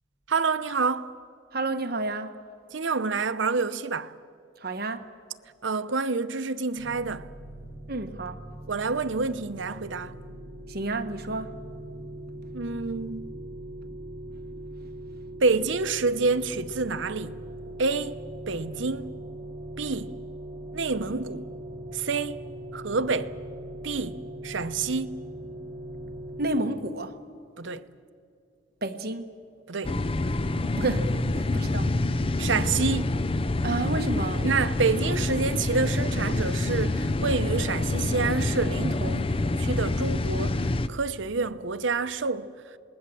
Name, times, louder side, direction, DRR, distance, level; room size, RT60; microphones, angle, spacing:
voice 1, 0.3-1.1 2.7-4.1 5.6-7.3 8.7-10.1 12.5-13.3 15.4-17.4 17.8-19.1 19.8-20.1 20.7-21.5 21.9-22.4 22.7-23.4 23.8-25.2 27.6-27.9 29.7-30.0 32.4-33.1 34.4-42.5, right 4 dB, 75° right, 0.8 m, -28 dB
voice 2, 1.5-2.3 4.6-5.1 7.9-8.4 10.7-11.5 26.4-27.2 28.8-29.4 30.8-32.4 33.6-34.5, right 2 dB, 55° right, 1.3 m, -31 dB
sound 1, 6.7-26.6, right 1 dB, 20° right, 4.5 m, -40 dB
sound 2, 29.8-40.9, left 2 dB, 30° left, 0.6 m, -27 dB
27.0 x 20.5 x 7.6 m
head